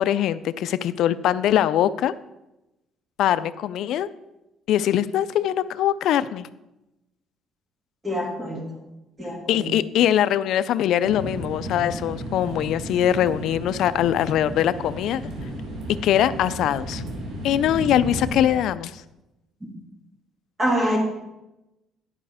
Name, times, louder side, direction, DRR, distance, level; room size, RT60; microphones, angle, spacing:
voice 1, 0.0-2.1 3.2-4.1 4.7-6.5 9.5-15.2 16.0-17.0 17.4-19.0, left 11 dB, 65° left, 15 dB, 0.4 m, -22 dB
voice 2, 8.0-8.6 9.2-9.7 20.6-21.0, equal, 15° right, 0 dB, 2.1 m, -25 dB
sound 1, 11.0-18.5, right 1 dB, 75° right, 2.3 m, -33 dB
11.0 x 5.6 x 4.9 m, 0.96 s
cardioid pair, 155°, 0 cm